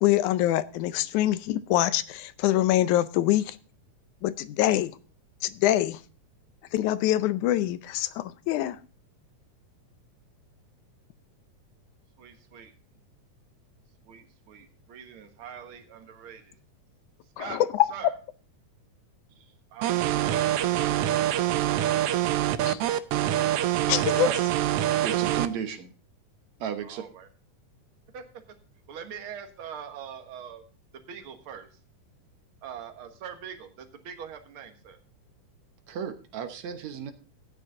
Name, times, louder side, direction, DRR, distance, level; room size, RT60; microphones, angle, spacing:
voice 1, 0.0-3.6 4.2-4.9 5.4-6.0 6.7-8.8 17.4-17.9 22.7-22.8 23.9-24.3, left 13 dB, 80° left, 2.1 m, -24 dB
voice 2, 12.2-12.7 14.0-16.6 17.4-17.6 17.9-18.1 19.7-21.9 26.8-27.3 28.1-28.2 28.9-30.6 31.1-31.8 32.6-35.0, right 8 dB, 50° right, 2.0 m, -43 dB
sound 1, 19.8-25.5, right 12 dB, 85° right, 1.3 m, -25 dB
voice 3, 25.0-25.9 26.6-27.0 35.9-37.1, right 8 dB, 70° right, 2.2 m, -34 dB
14.0 x 9.2 x 3.7 m
omnidirectional pair, 3.6 m